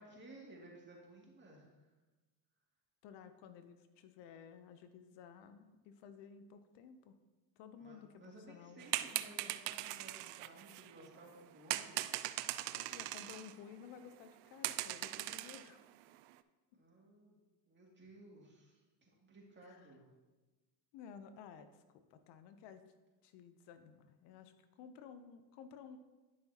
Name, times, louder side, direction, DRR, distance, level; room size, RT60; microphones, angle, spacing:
voice 1, 0.0-1.9 7.8-12.0 16.7-17.4 17.7-20.1, right 1 dB, 25° right, -3 dB, 2.4 m, -57 dB
voice 2, 3.0-7.2 7.6-8.8 12.7-15.8 16.7-16.8 19.6-19.9 20.9-22.9 23.2-26.0, left 7 dB, 75° left, 10 dB, 0.7 m, -55 dB
sound 1, 8.8-11.1 11.7-13.5 13.8-13.9 14.3-14.4 14.6-15.7 16.1-16.3, right 16 dB, 75° right, 0.5 m, -40 dB
10.5 x 5.8 x 2.9 m, 1.2 s
supercardioid pair, 95°, 43 cm